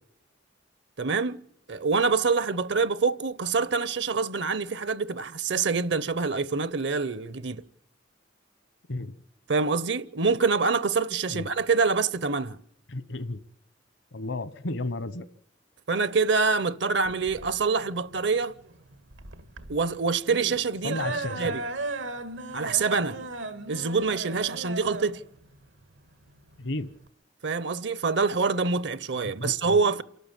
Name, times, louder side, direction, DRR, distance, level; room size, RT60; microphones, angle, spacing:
voice 1, 1.0-1.4 1.7-7.6 9.5-12.6 15.9-18.5 19.7-21.0 21.4-21.6 22.5-23.2 23.7-25.2 27.4-30.0, right 4 dB, 65° right, 0.8 m, -26 dB
voice 2, 12.9-13.4 14.1-15.2 20.8-21.5 26.6-26.9 29.2-29.8, left 2 dB, 80° left, 1.1 m, -33 dB
sound 1, 17.0-27.1, right 2 dB, 85° right, 1.7 m, -37 dB
28.0 x 12.5 x 7.4 m
head